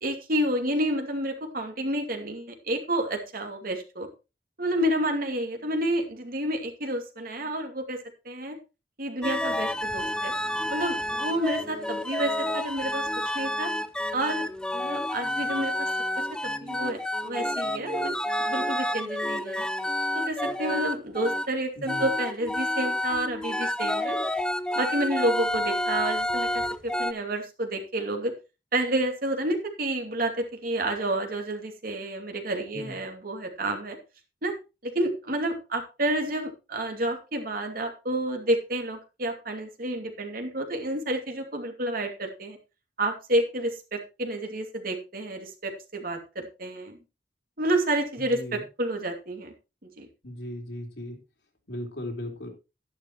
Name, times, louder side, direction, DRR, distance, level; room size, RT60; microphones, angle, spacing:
voice 1, 0.0-4.1 4.6-8.0 8.2-8.6 9.0-10.3 10.7-13.1 13.3-13.7 14.1-14.5 14.7-15.9 16.2-19.7 20.1-24.2 24.8-28.3 28.7-34.0 34.4-34.5 34.8-42.6 43.0-47.0 47.6-49.5 49.8-50.1, right 1 dB, 55° right, 4 dB, 2.7 m, -30 dB
sound 1, 9.2-21.5 21.9-27.1, left 1 dB, 5° left, 0.5 m, -29 dB
voice 2, 48.3-48.6 50.2-51.2 51.7-52.5, left 1 dB, 75° left, 1 dB, 3.8 m, -37 dB
12.0 x 11.5 x 3.1 m, 0.28 s
head